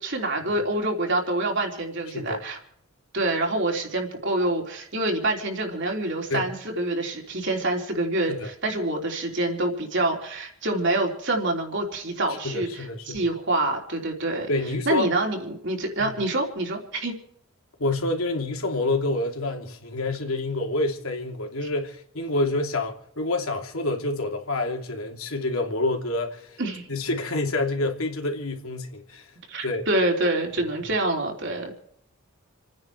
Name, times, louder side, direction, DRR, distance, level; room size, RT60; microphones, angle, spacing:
voice 1, 0.0-2.6 3.1-14.5 14.8-17.2 26.6-26.9 29.5-31.7, right 2 dB, 55° right, 3.4 m, -26 dB
voice 2, 2.1-2.4 6.3-6.5 8.3-8.5 12.4-13.3 14.5-15.1 16.0-16.1 17.8-26.6 26.9-29.3 29.6-29.9, left 2 dB, 85° left, 3.0 m, -28 dB
29.0 x 9.7 x 4.7 m
head